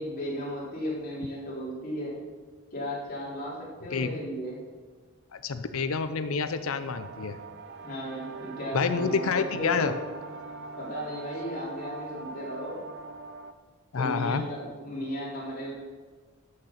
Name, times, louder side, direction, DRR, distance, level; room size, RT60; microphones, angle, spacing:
voice 1, 0.0-2.2 2.7-4.6 7.8-9.9 10.8-12.8 13.9-15.7, equal, 45° left, -6 dB, 3.9 m, -35 dB
voice 2, 5.3-7.4 8.7-9.9 13.9-14.4, left 5 dB, 80° left, 10 dB, 0.6 m, -28 dB
sound 1, 6.9-13.5, right 3 dB, 50° right, 0.6 m, -42 dB
13.0 x 6.5 x 5.7 m, 1.4 s
head